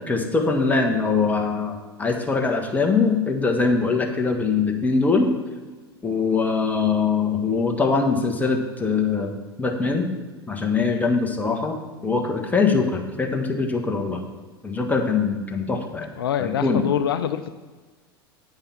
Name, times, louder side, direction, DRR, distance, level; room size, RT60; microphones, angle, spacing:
voice 1, 0.1-5.3 6.0-10.1 10.5-14.2 14.6-16.1 16.4-16.8, left 4 dB, 10° left, 2 dB, 1.5 m, -22 dB
voice 2, 16.2-17.5, left 9 dB, 70° left, 10 dB, 0.5 m, -25 dB
8.9 x 5.7 x 7.1 m, 1.3 s
figure-of-eight pair, 80°, 13 cm